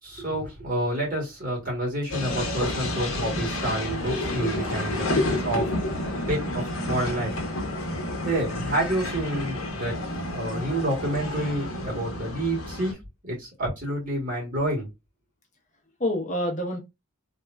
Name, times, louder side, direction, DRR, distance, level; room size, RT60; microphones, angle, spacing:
voice 1, 0.0-5.6 6.3-7.3 8.2-10.0 10.3-13.0 13.2-14.9, right 1 dB, 40° right, 2.1 m, -28 dB
sound 1, 2.1-12.9, left 1 dB, 65° left, 1.0 m, -31 dB
voice 2, 4.1-4.5 4.9-5.9 16.0-16.8, left 2 dB, 35° left, 1.0 m, -28 dB
3.5 x 2.8 x 2.2 m
head